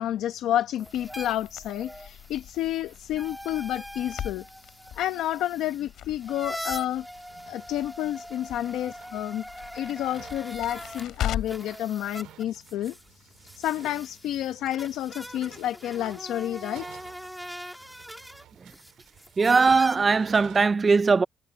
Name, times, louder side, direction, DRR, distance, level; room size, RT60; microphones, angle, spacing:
voice 1, 0.0-7.1 7.5-9.4 9.7-13.3 13.6-16.9, left 12 dB, 80° left, 0.9 m, -30 dB
sound 1, 0.7-11.1 11.4-20.0, equal, ahead, 2.5 m, -42 dB
Crackle, 0.8-11.8, left 11 dB, 60° left, 3.2 m, -40 dB
sound 2, 1.0-1.5 1.8-1.9 2.1-2.2 2.6-2.7 2.9-3.5 3.8-3.9 4.3-4.4 4.9-5.0 5.6-20.6, right 13 dB, 85° right, 5.1 m, -54 dB
voice 2, 19.4-21.2, right 4 dB, 20° right, 0.4 m, -20 dB
cardioid pair, 175°, 0 cm